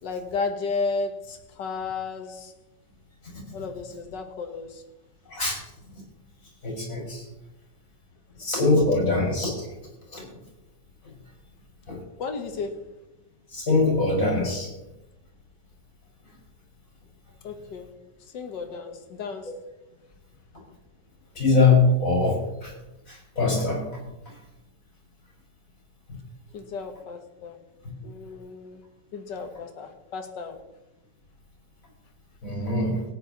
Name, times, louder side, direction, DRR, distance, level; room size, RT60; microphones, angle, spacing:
voice 1, 0.0-2.5 3.5-4.8 12.2-12.9 17.4-18.0 18.3-19.5 26.5-27.6 28.0-28.8 29.1-30.6, left 4 dB, 70° left, 6 dB, 1.9 m, -33 dB
voice 2, 6.6-7.2 8.4-9.7 10.1-10.3 11.9-12.0 13.5-14.7 21.4-22.7 23.1-23.8 32.4-33.0, left 3 dB, 45° left, -3 dB, 5.8 m, -22 dB
17.5 x 9.6 x 4.0 m, 0.98 s
omnidirectional pair, 2.0 m